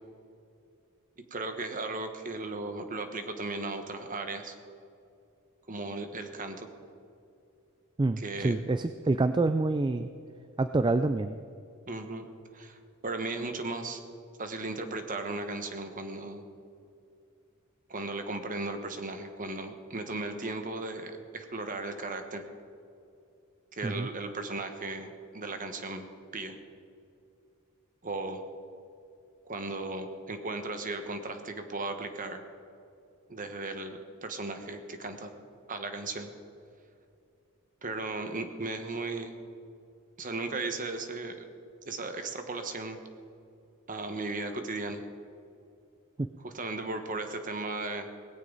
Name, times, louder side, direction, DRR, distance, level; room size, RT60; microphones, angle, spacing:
voice 1, 1.3-4.5 5.7-6.7 8.2-8.6 11.9-12.3 12.5-14.0 14.4-16.4 17.9-22.4 23.7-26.1 26.3-26.6 28.0-28.4 29.4-32.4 33.3-35.3 35.7-36.3 37.8-39.4 40.2-41.5 41.9-43.0 43.9-45.0 46.4-48.1, right 2 dB, 35° right, 6 dB, 1.3 m, -36 dB
voice 2, 8.0-10.1 10.6-11.4 23.8-24.1 46.2-46.3, right 2 dB, 20° right, 10 dB, 0.3 m, -27 dB
18.5 x 16.5 x 4.0 m, 2.6 s
head